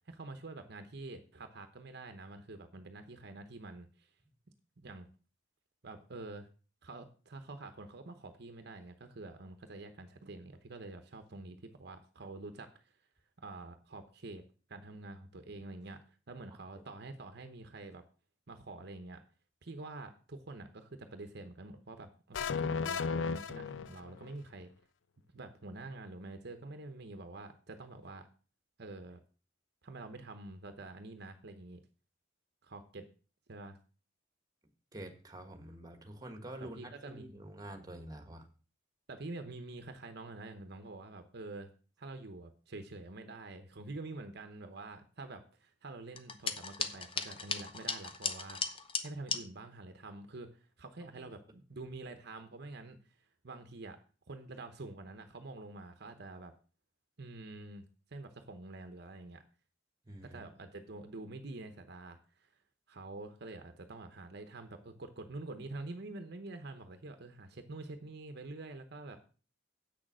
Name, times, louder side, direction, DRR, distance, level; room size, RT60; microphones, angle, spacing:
voice 1, 0.1-4.1 4.8-5.1 5.8-6.5 6.8-12.8 13.4-14.4 14.7-18.0 18.5-19.2 19.6-24.7 25.3-28.3 28.8-29.2 29.8-31.8 32.6-33.1 33.5-33.8 36.6-37.4 39.1-41.7 42.0-48.6 49.0-54.0 54.3-56.5 57.2-59.4 60.2-62.5 62.9-69.2, right 2 dB, 60° right, 8 dB, 0.9 m, -47 dB
sound 1, 22.3-24.3, left 5 dB, 75° left, 0.4 m, -34 dB
voice 2, 34.9-38.5 51.2-51.3 60.0-60.4, right 1 dB, 20° right, 6 dB, 1.5 m, -47 dB
sound 2, 46.2-49.4, left 5 dB, 30° left, 0.8 m, -37 dB
8.2 x 6.6 x 6.1 m, 0.37 s
head